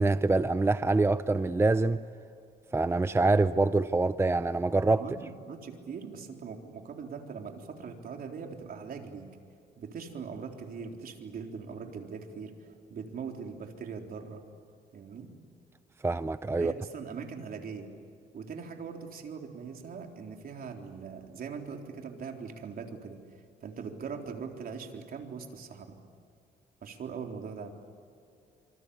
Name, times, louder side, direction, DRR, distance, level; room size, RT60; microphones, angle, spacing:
voice 1, 0.0-2.0 2.7-5.0 16.0-16.7, right 3 dB, 15° right, 0.6 m, -25 dB
voice 2, 5.0-9.3 9.8-14.4 14.9-15.3 16.6-17.9 18.3-23.2 23.6-26.0 26.8-27.7, right 5 dB, 60° right, 3.9 m, -41 dB
26.5 x 26.0 x 8.5 m
cardioid pair, 105°, 17 cm